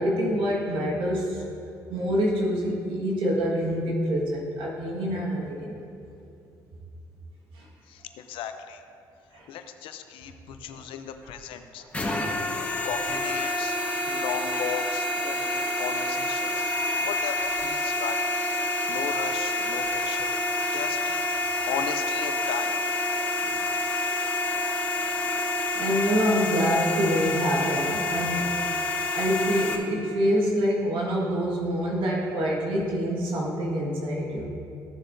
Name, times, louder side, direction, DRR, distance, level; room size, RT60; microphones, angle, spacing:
voice 1, 0.0-1.4 1.9-5.8 7.5-7.7 9.3-9.5 10.7-10.8 11.8-11.9 12.5-12.6 16.8-16.9 25.8-28.7 29.1-34.5, equal, 70° right, -3 dB, 1.7 m, -26 dB
voice 2, 7.9-8.8 9.5-11.8 12.5-13.8 14.1-18.2 18.9-20.4 20.7-22.7, left 8 dB, 75° left, 8 dB, 0.7 m, -36 dB
sound 1, 11.9-29.8, left 1 dB, 15° left, 1.7 m, -28 dB
15.5 x 7.0 x 2.7 m, 2.7 s
supercardioid pair, 75°, 9 cm